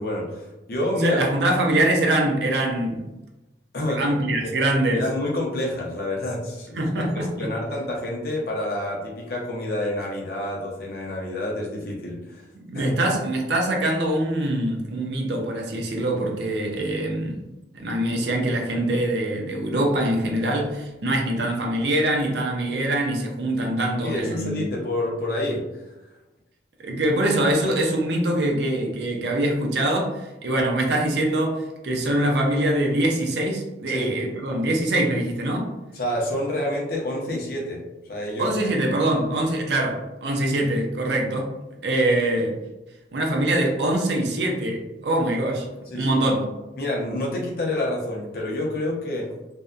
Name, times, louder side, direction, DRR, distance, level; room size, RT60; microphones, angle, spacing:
voice 1, 0.0-1.2 3.7-4.0 4.4-4.5 4.9-12.4 12.7-12.9 24.0-25.6 33.9-34.1 35.9-38.5 45.9-46.1 46.8-49.3, left 1 dB, 55° left, 0.6 m, -28 dB
voice 2, 1.0-3.1 4.0-5.0 6.8-7.5 12.5-17.4 17.7-24.7 26.8-35.7 38.4-41.6 41.8-42.6 43.1-45.7 45.9-46.5, right 1 dB, 70° right, 0.5 m, -23 dB
2.6 x 2.1 x 2.3 m
head